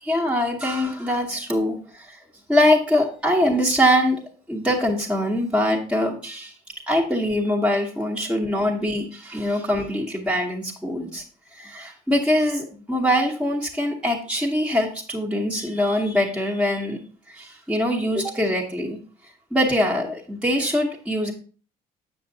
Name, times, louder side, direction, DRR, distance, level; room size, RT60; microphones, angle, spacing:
voice 1, 0.0-2.2 2.5-4.2 4.5-6.5 6.9-11.2 11.5-17.0 17.3-19.0 19.5-21.3, equal, 5° right, -1 dB, 1.0 m, -23 dB
7.2 x 6.9 x 2.7 m, 0.41 s
cardioid pair, 110°, 17 cm